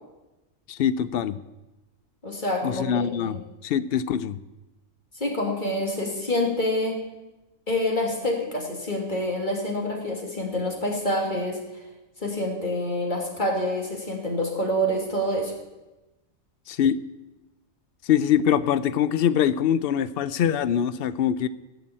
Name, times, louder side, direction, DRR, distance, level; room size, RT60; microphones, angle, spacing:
voice 1, 0.7-1.4 2.6-4.4 16.7-17.0 18.0-21.5, left 9 dB, 60° left, 15 dB, 0.7 m, -23 dB
voice 2, 2.2-3.4 5.1-7.0 7.7-11.8 12.2-15.5, left 1 dB, 35° left, 0 dB, 2.7 m, -27 dB
15.5 x 5.9 x 8.7 m, 1.0 s
omnidirectional pair, 1.4 m